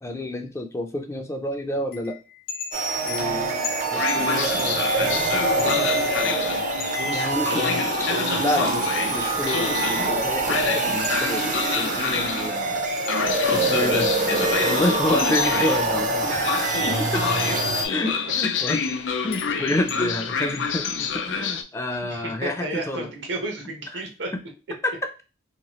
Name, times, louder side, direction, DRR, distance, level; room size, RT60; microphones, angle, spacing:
voice 1, 0.0-2.2 3.1-4.6 7.1-7.7 8.4-12.8 13.5-14.1 14.6-17.2 17.9-18.9 19.2-23.1 23.9-24.0 24.8-24.9, left 1 dB, 15° left, 5 dB, 0.3 m, -29 dB
sound 1, 1.9-7.1 7.7-7.8 8.8-11.5 12.0-13.9 14.3-14.4 14.7-15.9 16.4-16.5 17.4-17.8 18.1-21.1, left 5 dB, 60° left, 0.8 m, -38 dB
sound 2, 2.7-17.9, right 2 dB, 45° right, 0.5 m, -25 dB
Train, 3.9-21.6, left 6 dB, 85° left, 0.4 m, -28 dB
voice 2, 3.9-9.2 16.3-16.4 21.9-24.3, right 1 dB, 80° right, 3 dB, 0.9 m, -35 dB
2.9 x 2.3 x 2.9 m, 0.31 s
head